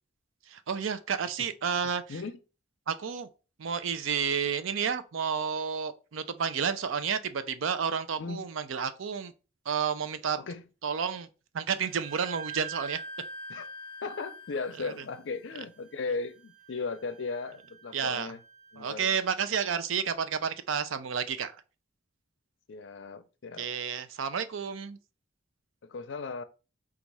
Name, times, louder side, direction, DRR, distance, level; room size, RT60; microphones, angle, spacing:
voice 1, 0.5-2.2 2.9-3.3 3.6-9.3 9.7-10.4 10.8-11.3 11.5-13.0 14.8-14.9 17.9-18.3 18.8-21.5 23.6-25.0, right 6 dB, 90° right, 0.5 m, -31 dB
Wind instrument woodwind instrument, 11.8-19.2, right 3 dB, 45° right, 1.1 m, -46 dB
voice 2, 14.0-18.4 18.7-19.1 22.7-23.7 25.8-26.4, left 4 dB, 65° left, 0.5 m, -36 dB
4.0 x 2.4 x 4.7 m
head